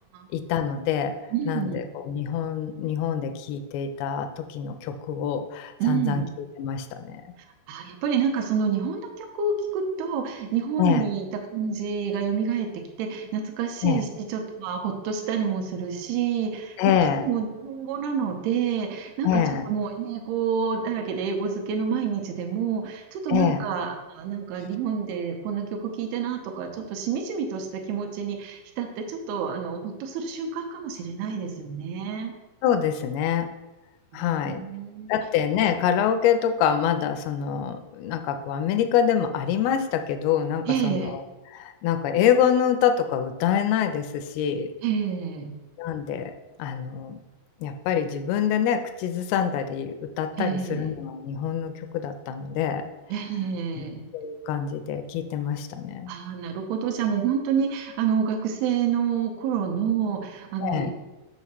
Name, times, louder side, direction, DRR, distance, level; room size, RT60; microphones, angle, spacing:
voice 1, 0.3-1.2 1.5-6.2 6.6-7.2 10.8-11.0 13.8-14.0 16.8-17.3 19.2-19.7 23.3-23.6 32.6-33.5 34.1-34.6 35.1-41.2 41.5-44.7 45.8-46.3 46.6-47.2 47.6-52.8 54.1-56.1 60.6-60.9, left 8 dB, 80° left, 7 dB, 2.3 m, -25 dB
voice 2, 1.3-1.8 5.8-6.3 7.7-16.8 17.2-32.3 34.1-35.1 40.7-41.1 44.8-45.5 50.4-50.9 53.1-54.0 56.1-60.9, right 7 dB, 80° right, 2 dB, 2.6 m, -28 dB
7.2 x 6.2 x 3.0 m, 1.1 s
omnidirectional pair, 4.8 m